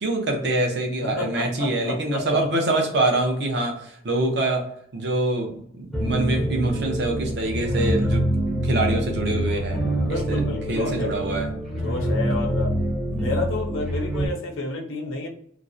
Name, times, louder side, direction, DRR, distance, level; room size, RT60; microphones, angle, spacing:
voice 1, 0.0-5.5 5.8-8.2 8.5-9.8 10.3-10.4 10.7-11.5, right 2 dB, 55° right, 2 dB, 0.6 m, -25 dB
voice 2, 1.0-2.5 7.5-7.6 10.0-11.2 11.8-12.8 13.1-15.3, left 2 dB, 80° left, 3 dB, 0.5 m, -30 dB
sound 1, 5.9-14.3, right 1 dB, ahead, 0.5 m, -25 dB
2.5 x 2.0 x 2.5 m, 0.69 s
head